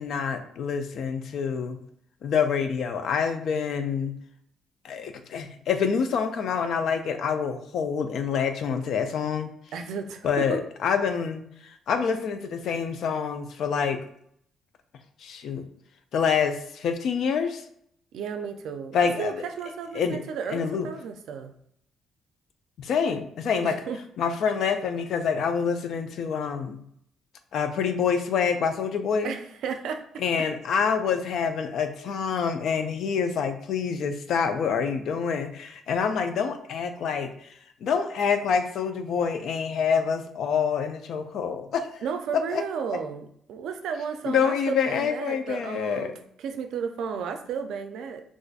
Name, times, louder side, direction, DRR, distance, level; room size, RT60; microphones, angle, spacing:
voice 1, 0.0-1.8 2.2-4.1 4.8-9.5 10.2-14.0 15.2-15.7 16.1-17.6 18.9-19.4 20.0-20.2 20.5-20.9 22.8-23.7 24.2-26.8 27.5-29.3 30.2-37.5 37.8-41.9 42.5-42.6 44.3-46.1, left 6 dB, 70° left, 8 dB, 0.4 m, -26 dB
voice 2, 9.7-10.6 18.1-21.5 23.6-24.0 29.2-30.2 42.0-46.1 46.4-48.2, right 6 dB, 80° right, 7 dB, 0.4 m, -33 dB
3.9 x 2.5 x 2.4 m, 0.68 s
cardioid pair, 90°, 0 cm